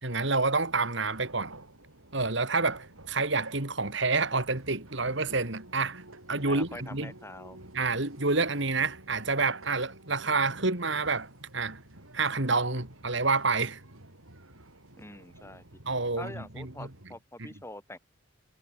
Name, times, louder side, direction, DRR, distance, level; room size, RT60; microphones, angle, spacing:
voice 1, 0.0-1.5 2.1-6.0 6.3-7.1 7.7-11.8 12.1-13.8 15.9-16.9 17.4-17.5, right 3 dB, 60° right, 2.4 m, -28 dB
sound 1, 0.6-17.1, right 1 dB, 80° right, 6.0 m, -51 dB
voice 2, 6.4-7.6 14.9-15.6 16.2-18.0, left 1 dB, 10° left, 6.6 m, -44 dB
head